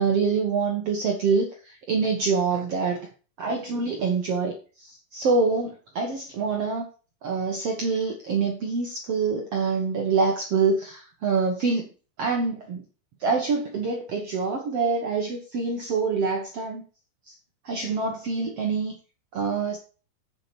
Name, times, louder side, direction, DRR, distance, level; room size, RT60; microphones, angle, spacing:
voice 1, 0.0-1.5 1.9-3.0 3.4-4.6 4.8-6.9 7.2-11.9 12.2-12.8 13.2-16.8 17.7-18.9 19.3-19.8, right 4 dB, 55° right, 1 dB, 2.0 m, -25 dB
8.8 x 7.6 x 4.6 m, 0.36 s
omnidirectional pair, 4.1 m